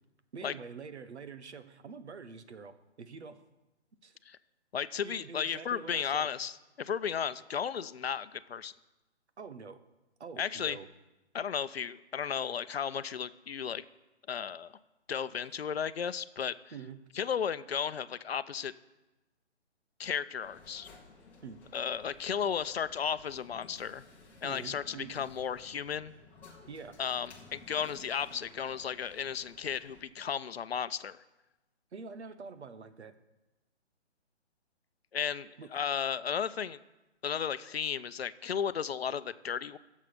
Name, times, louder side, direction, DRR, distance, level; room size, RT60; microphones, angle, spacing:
voice 1, 0.3-3.4 4.0-4.2 5.0-6.3 9.4-9.8 10.2-10.9 16.7-17.0 21.4-21.6 24.4-25.2 26.7-27.0 31.9-33.1 35.6-35.7, right 5 dB, 70° right, 10 dB, 1.3 m, -46 dB
voice 2, 4.7-8.7 10.4-10.8 11.3-13.8 14.3-14.7 15.1-16.6 17.1-18.7 20.0-20.9 21.7-24.0 24.4-26.1 27.0-31.2 35.1-36.8 37.2-39.8, left 7 dB, 60° left, 14 dB, 0.7 m, -34 dB
sound 1, 20.4-30.0, left 3 dB, 5° left, 1.0 m, -56 dB
15.5 x 7.4 x 5.2 m, 1.0 s
hypercardioid pair, 160°, 35 cm